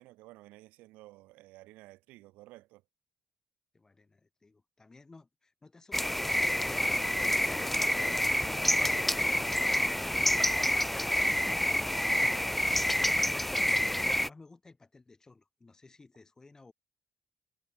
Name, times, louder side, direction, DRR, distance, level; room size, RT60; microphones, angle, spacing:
voice 1, 0.0-2.8, right 19 dB, 80° right, 1.4 m, -53 dB
voice 2, 3.7-16.7, left 3 dB, 25° left, 7.6 m, -56 dB
sound 1, 5.9-14.3, left 1 dB, 5° left, 0.4 m, -28 dB
supercardioid pair, 70°, 3 cm